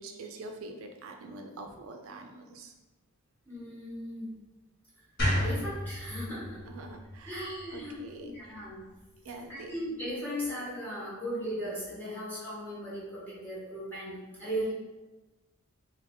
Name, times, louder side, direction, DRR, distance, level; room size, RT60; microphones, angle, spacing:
voice 1, 0.0-2.7 6.6-8.5 9.2-9.7, right 2 dB, 75° right, 4 dB, 0.4 m, -45 dB
voice 2, 3.5-4.3 5.4-6.6 7.3-8.9 9.3-14.7, equal, 10° left, -9 dB, 1.3 m, -37 dB
sound 1, 5.2-8.4, equal, 50° left, 1.2 m, -32 dB
3.4 x 2.8 x 3.6 m, 1.2 s
head